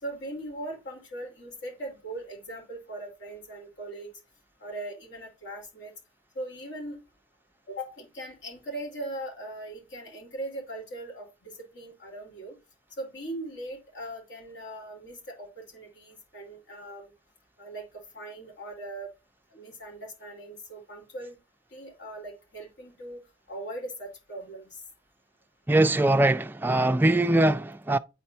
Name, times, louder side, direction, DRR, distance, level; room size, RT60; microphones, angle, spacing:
voice 1, 0.0-4.1 4.6-5.9 6.3-7.0 7.7-12.6 13.0-17.1 17.6-19.1 19.5-21.4 21.7-23.2 23.5-24.8, right 1 dB, 65° left, 3.7 m, -40 dB
voice 2, 25.7-28.0, right 2 dB, 10° right, 0.3 m, -22 dB
9.4 x 4.4 x 2.7 m
head